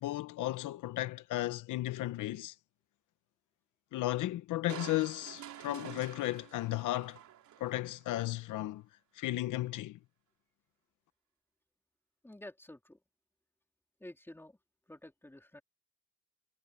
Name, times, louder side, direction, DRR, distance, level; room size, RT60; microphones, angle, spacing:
voice 1, 0.0-2.5 3.9-7.2 7.6-8.8 9.2-10.0, left 16 dB, 90° left, 1.1 m, -34 dB
Crushing, 4.7-8.1 8.5-8.6, right 11 dB, 70° right, 3.3 m, -49 dB
voice 2, 12.2-13.0 14.0-14.6 14.9-15.6, left 1 dB, 5° left, 3.2 m, -50 dB
cardioid pair, 90°, 30 cm